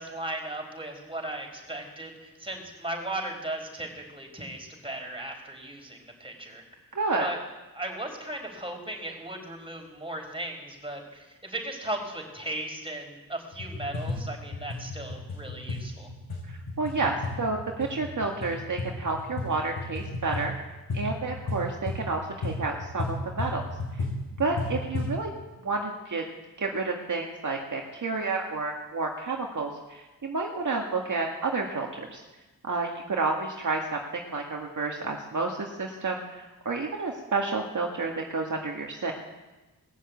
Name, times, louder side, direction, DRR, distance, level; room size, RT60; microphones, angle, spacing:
voice 1, 0.0-6.6 7.2-7.4 7.7-16.1, right 1 dB, 15° right, 1 dB, 4.8 m, -37 dB
voice 2, 6.9-7.3 16.5-20.5 20.9-23.6 24.0-24.1 24.4-25.3 25.6-26.2 26.6-32.2 32.6-39.1, right 3 dB, 55° right, 0 dB, 1.9 m, -30 dB
sound 1, 13.5-25.2, left 2 dB, 80° left, 7.0 m, -34 dB
20.0 x 7.4 x 8.3 m, 1.1 s
cardioid pair, 60°, 36 cm